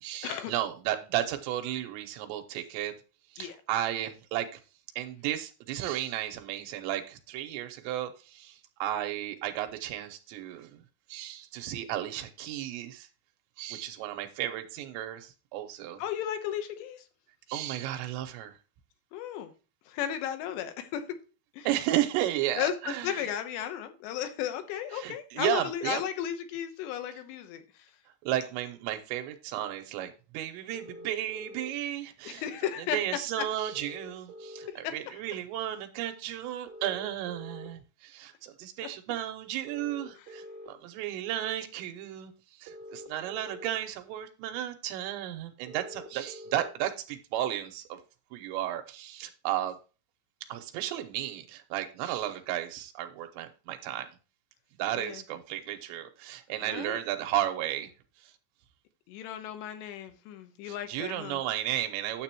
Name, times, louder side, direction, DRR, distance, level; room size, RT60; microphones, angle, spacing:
voice 1, 0.0-2.9 3.3-4.6 5.0-10.8 11.1-13.1 13.6-16.0 17.5-18.6 21.7-23.2 24.9-26.0 28.2-32.4 32.9-42.3 42.6-48.0 48.3-49.8 50.4-54.1 54.8-57.9 60.7-62.2, right 12 dB, 90° right, 3.0 m, -33 dB
voice 2, 16.0-17.0 19.1-19.5 19.9-21.0 21.5-21.7 22.6-27.9 32.3-33.0 33.4-33.5 34.7-35.2 55.0-55.2 56.6-57.0 59.1-61.4, left 10 dB, 75° left, 3.0 m, -34 dB
sound 1, 30.7-31.7 33.7-34.7 36.7-37.7 39.7-40.7 42.7-43.7 45.7-46.7, equal, 65° right, 1.8 m, -45 dB
9.6 x 7.5 x 2.9 m
omnidirectional pair, 5.2 m